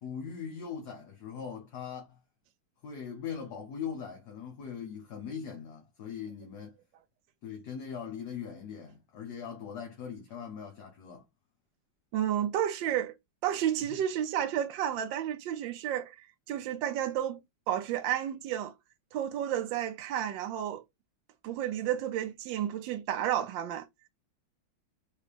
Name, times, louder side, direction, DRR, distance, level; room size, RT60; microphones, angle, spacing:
voice 1, 0.0-2.2 2.8-6.8 7.4-11.2 13.9-14.0, left 7 dB, 60° left, 1.5 m, -40 dB
voice 2, 12.1-13.1 13.4-17.4 17.7-18.7 19.1-20.8 21.4-23.9, right 10 dB, 75° right, 1.2 m, -31 dB
5.0 x 2.6 x 3.3 m
omnidirectional pair, 2.2 m